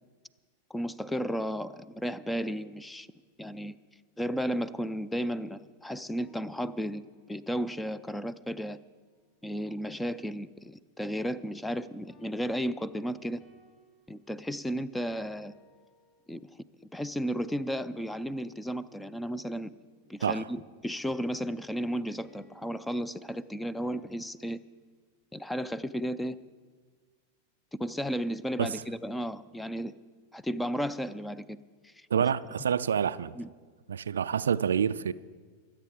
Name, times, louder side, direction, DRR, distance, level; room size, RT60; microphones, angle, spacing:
voice 1, 0.7-3.1 3.4-3.8 4.2-7.0 7.3-8.8 9.4-13.4 14.1-15.5 16.3-16.5 16.9-19.7 20.1-24.6 25.3-26.4 27.7-29.9 30.3-31.9 33.3-33.5, equal, 5° left, 0.4 m, -34 dB
sound 1, 6.2-7.6 12.1-16.6 21.1-24.4, left 2 dB, 20° left, 3.9 m, -61 dB
voice 2, 32.1-33.4 33.9-35.1, right 7 dB, 65° right, 0.3 m, -27 dB
23.5 x 8.2 x 5.0 m
figure-of-eight pair, 90°, 0 cm